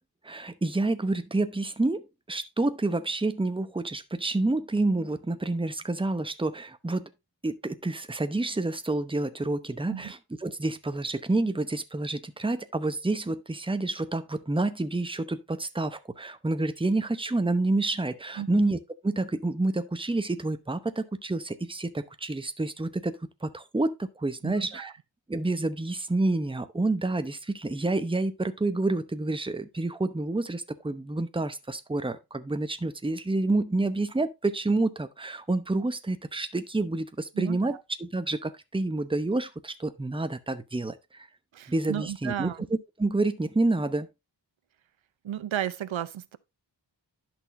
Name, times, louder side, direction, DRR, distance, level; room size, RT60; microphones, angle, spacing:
voice 1, 0.2-7.1 7.4-24.9 25.3-41.3 41.7-44.1, right 2 dB, 10° right, 0.8 m, -28 dB
voice 2, 24.4-24.9 37.4-37.8 41.5-42.7 45.2-46.4, right 11 dB, 85° right, 0.7 m, -34 dB
11.0 x 6.2 x 2.6 m
wide cardioid pair, 80°, 46 cm